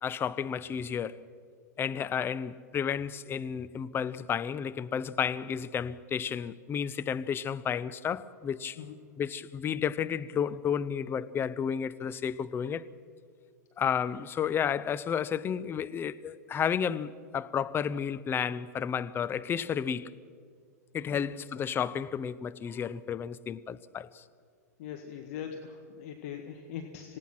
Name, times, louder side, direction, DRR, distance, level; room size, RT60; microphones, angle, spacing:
voice 1, 0.0-1.2 1.8-8.8 9.2-12.9 13.8-20.1 20.9-24.2, left 7 dB, 25° left, 0.7 m, -32 dB
voice 2, 21.1-21.4 24.8-27.2, left 8 dB, 60° left, 1.7 m, -41 dB
26.0 x 18.5 x 6.1 m
hypercardioid pair, 100°, 9 cm